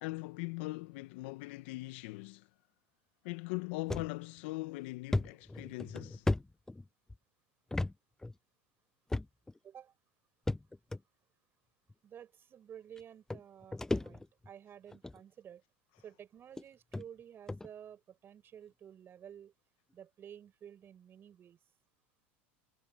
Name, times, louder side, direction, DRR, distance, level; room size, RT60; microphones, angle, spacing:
voice 1, 0.0-2.5 3.2-6.3, left 22 dB, 70° left, 1.2 m, -41 dB
sound 1, 3.9-4.1 4.5-4.6 5.1-7.2 7.7-7.9 8.2-8.3 9.1-9.6 10.5-11.0 11.9-12.0 13.0-13.1 13.3-14.5 14.9-15.2 16.0-16.1 16.6-16.7 16.9-17.1 17.5-17.7, left 2 dB, 10° left, 0.6 m, -35 dB
voice 2, 9.6-9.9 12.0-15.6 16.0-19.5 19.9-21.6, right 9 dB, 35° right, 6.4 m, -52 dB
hypercardioid pair, 95°, 6 cm